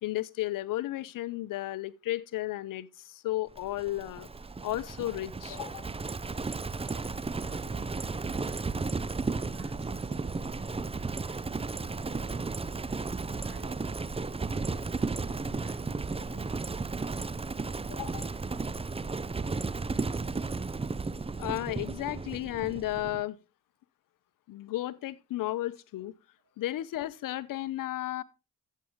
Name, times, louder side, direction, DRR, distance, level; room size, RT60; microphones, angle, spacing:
voice 1, 0.0-4.3 4.6-5.9 17.9-18.4 21.4-23.4 24.5-26.1 26.6-28.2, left 15 dB, 80° left, 0.7 m, -34 dB
Livestock farm animals working animals, 3.6-23.2, right 4 dB, 20° right, 0.6 m, -34 dB
voice 2, 6.7-17.0, right 4 dB, 85° right, 5.7 m, -56 dB
13.0 x 8.3 x 3.0 m
cardioid pair, 65°, 32 cm